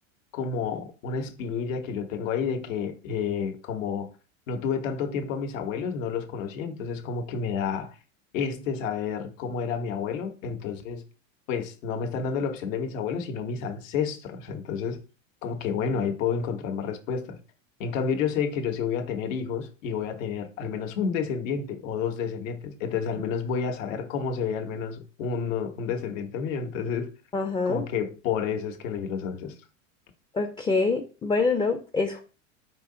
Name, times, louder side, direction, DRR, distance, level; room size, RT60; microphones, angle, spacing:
voice 1, 0.3-4.1 4.5-8.0 8.3-11.0 11.5-15.0 15.4-17.4 17.8-27.1 27.6-29.6, left 6 dB, 75° left, 1.1 m, -30 dB
voice 2, 27.3-27.9 30.3-32.2, left 4 dB, 10° left, 0.4 m, -25 dB
4.9 x 2.8 x 3.7 m
hypercardioid pair, 110°, 40 cm